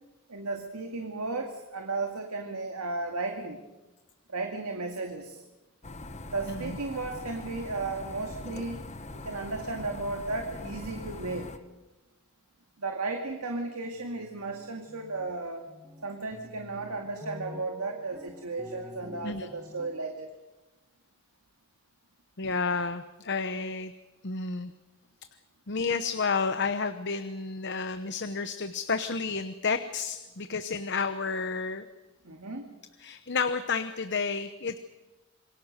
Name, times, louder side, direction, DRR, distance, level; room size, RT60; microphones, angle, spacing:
voice 1, 0.3-3.6 4.3-5.4 6.3-8.9 9.1-11.6 12.8-15.7 16.0-20.3 32.2-32.7, right 3 dB, 90° right, 3 dB, 2.2 m, -34 dB
sound 1, 5.8-11.6, left 2 dB, 30° left, 1.3 m, -42 dB
sound 2, 13.9-15.3 15.7-20.2, left 1 dB, 5° right, 1.9 m, -47 dB
voice 2, 22.4-23.9 24.2-24.7 25.7-31.9 33.0-34.8, left 4 dB, 50° left, 10 dB, 1.0 m, -31 dB
27.5 x 23.0 x 6.7 m, 1.1 s
head